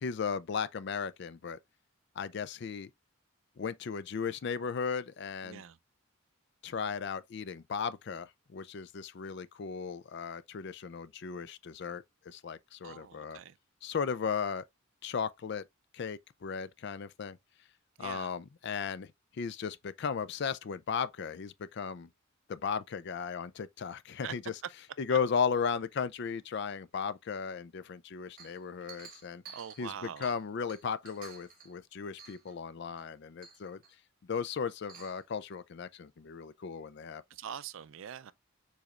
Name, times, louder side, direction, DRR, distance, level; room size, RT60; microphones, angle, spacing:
voice 1, 0.0-1.6 2.2-2.9 3.6-5.6 6.6-13.4 13.8-14.6 15.0-15.6 15.9-17.4 18.0-22.1 22.5-24.5 25.0-29.4 29.8-33.8 34.3-37.2, left 6 dB, 55° left, 0.4 m, -36 dB
voice 2, 5.4-5.8 12.8-13.6 18.0-18.3 24.2-24.3 25.1-25.2 29.5-30.3 37.3-38.3, right 8 dB, 65° right, 0.4 m, -43 dB
Chink clink, 28.4-30.4 30.7-31.7 32.2-32.6 33.0-33.1 33.4-33.9 34.7-35.2, right 6 dB, 40° right, 1.3 m, -52 dB
5.0 x 4.2 x 2.3 m
head